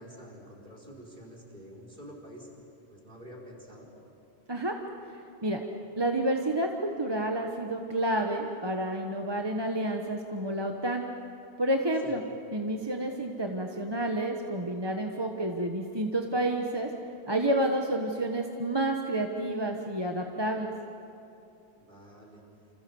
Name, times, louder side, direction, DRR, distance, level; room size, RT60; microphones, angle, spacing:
voice 1, 0.0-2.5 2.9-3.9 12.0-12.1 21.8-22.4, equal, 50° right, -1 dB, 5.1 m, -48 dB
voice 2, 6.0-11.0 11.6-12.2 12.5-16.9 17.3-20.7, right 1 dB, 25° right, 2 dB, 1.3 m, -29 dB
29.0 x 27.0 x 7.1 m, 2.7 s
omnidirectional pair, 1.1 m